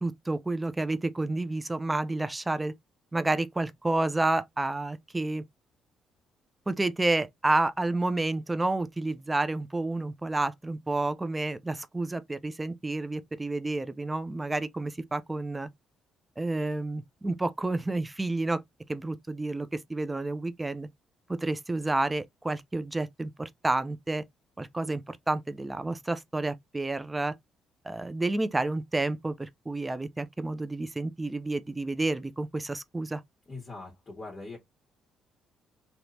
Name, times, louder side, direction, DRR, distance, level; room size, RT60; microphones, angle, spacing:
voice 1, 0.0-2.7 3.1-5.4 6.7-15.7 16.4-18.6 18.9-20.9 21.3-24.2 24.6-27.4 27.8-33.2, right 2 dB, 15° right, 0.5 m, -30 dB
voice 2, 33.5-34.6, left 3 dB, 30° left, 1.8 m, -41 dB
3.3 x 2.8 x 2.7 m
supercardioid pair, 75°, 0 cm